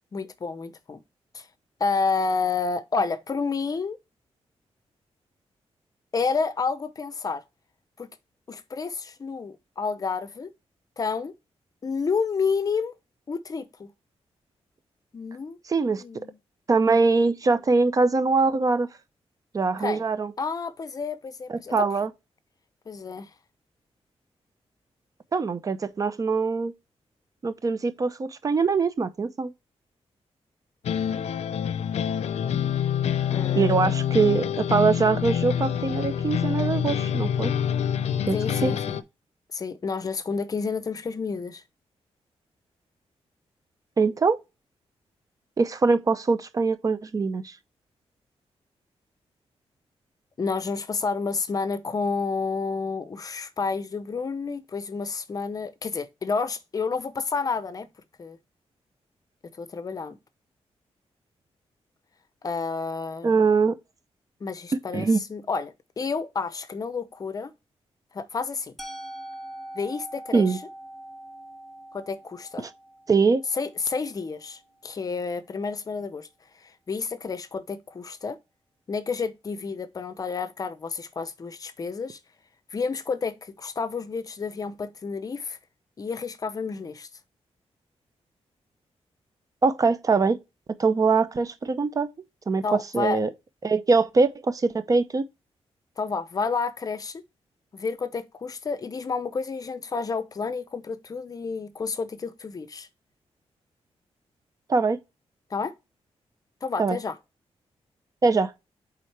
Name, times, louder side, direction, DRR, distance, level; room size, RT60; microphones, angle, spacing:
voice 1, 0.1-1.0 1.3-1.5 1.8-4.0 6.1-7.4 8.0-8.1 8.5-10.5 11.0-11.3 11.8-12.9 13.3-13.9 15.1-15.6 15.9-16.4 19.8-20.0 20.4-21.9 22.9-23.3 33.3-33.9 38.3-39.0 39.5-41.6 50.4-57.9 58.2-58.4 59.6-60.2 62.4-63.3 64.4-67.5 68.1-68.7 69.7-70.6 71.9-72.6 73.5-76.3 76.6-78.4 78.9-82.2 82.7-85.6 86.0-87.1 92.6-93.2 96.0-97.2 97.7-102.9 105.5-105.7 106.6-107.1, left 4 dB, 35° left, 0.6 m, -30 dB
voice 2, 15.7-16.0 16.7-18.9 19.5-20.3 21.5-22.1 25.3-26.7 27.4-29.5 33.5-37.5 38.3-38.4 38.6-38.7 44.0-44.4 45.6-47.5 63.2-63.8 64.9-65.2 70.3-70.6 73.1-73.4 89.6-90.4 90.8-92.1 92.5-92.6 92.9-93.3 93.6-95.3 104.7-105.0 106.8-107.0 108.2-108.5, right 4 dB, 35° right, 0.6 m, -22 dB
sound 1, 30.8-39.0, left 9 dB, 90° left, 0.6 m, -26 dB
Musical instrument, 68.8-74.7, right 1 dB, ahead, 1.1 m, -43 dB
8.8 x 3.7 x 3.3 m
wide cardioid pair, 170°, 11 cm